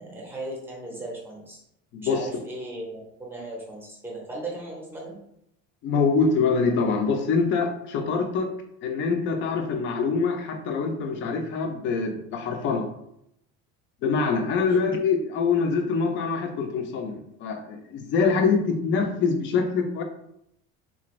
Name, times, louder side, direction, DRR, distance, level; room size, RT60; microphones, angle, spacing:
voice 1, 0.0-1.6 2.0-5.2 14.7-14.8, right 1 dB, 5° right, -2 dB, 0.7 m, -37 dB
voice 2, 1.9-2.3 5.8-8.5 8.8-12.9 14.0-20.0, left 5 dB, 40° left, 4 dB, 0.5 m, -24 dB
3.8 x 2.5 x 3.0 m, 0.76 s
cardioid pair, 175°, 31 cm